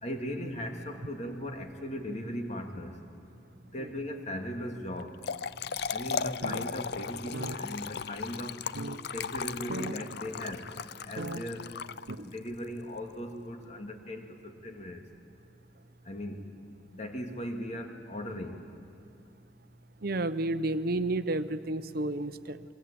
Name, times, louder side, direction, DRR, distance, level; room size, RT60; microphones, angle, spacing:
voice 1, 0.0-3.0 3.7-5.1 5.9-8.6 9.1-10.7 11.0-11.8 12.2-15.0 16.1-16.5 16.9-18.6, equal, 40° left, 4 dB, 2.4 m, -38 dB
Trickle dribble / Fill (with liquid), 5.0-12.5, left 6 dB, 60° left, 0.5 m, -37 dB
sound 1, 5.8-5.9 6.3-6.7 7.0-7.1 7.3-7.6 8.2-8.3 8.7-9.0 9.4-9.5 9.7-10.0 10.5-10.6 11.2-11.4 12.1-12.2, right 2 dB, 80° right, 1.0 m, -37 dB
voice 2, 20.0-22.6, right 2 dB, 55° right, 12 dB, 0.9 m, -31 dB
27.5 x 23.5 x 8.8 m, 2.6 s
head